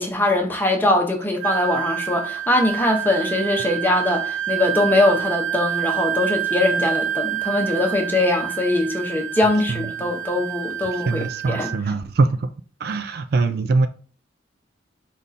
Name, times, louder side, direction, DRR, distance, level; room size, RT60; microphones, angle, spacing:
voice 1, 0.0-11.7, left 2 dB, 10° left, 0.8 m, -22 dB
Wind instrument woodwind instrument, 1.4-11.8, right 10 dB, 75° right, 0.8 m, -27 dB
voice 2, 9.4-9.9 10.8-12.5 12.8-13.9, right 3 dB, 50° right, 0.3 m, -23 dB
5.3 x 2.5 x 4.1 m
head